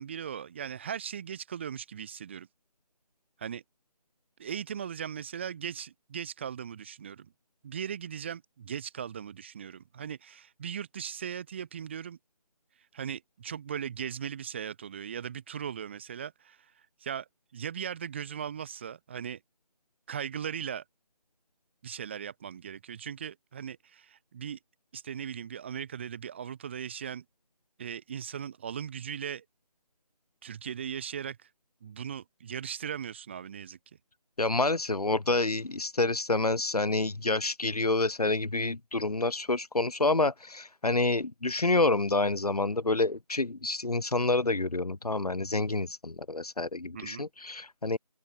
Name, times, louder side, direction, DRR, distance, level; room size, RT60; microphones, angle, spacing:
voice 1, 0.0-2.5 3.4-3.6 4.4-7.3 7.6-12.2 12.9-16.7 17.0-19.4 20.1-20.8 21.8-24.6 24.9-27.2 27.8-29.4 30.4-31.5 31.8-33.8 46.9-47.3, right 8 dB, 15° right, 3.2 m, -38 dB
voice 2, 34.4-48.0, left 2 dB, 70° left, 5.0 m, -28 dB
open air
figure-of-eight pair, 170°, 20 cm